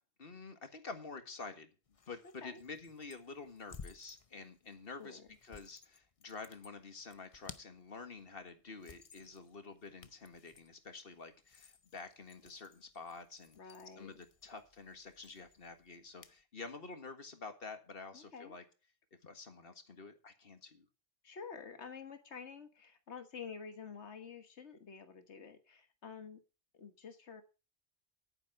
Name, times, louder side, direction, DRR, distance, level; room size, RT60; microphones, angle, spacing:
voice 1, 0.2-1.7 2.1-18.6 19.2-20.9, left 4 dB, 60° left, 8 dB, 1.9 m, -49 dB
sound 1, 1.9-16.4, left 5 dB, 35° left, 0.7 m, -58 dB
voice 2, 13.6-14.1 18.1-18.5 21.2-26.4 26.7-27.4, left 6 dB, 85° left, 8 dB, 1.7 m, -49 dB
11.0 x 9.4 x 4.8 m, 0.33 s
omnidirectional pair, 1.1 m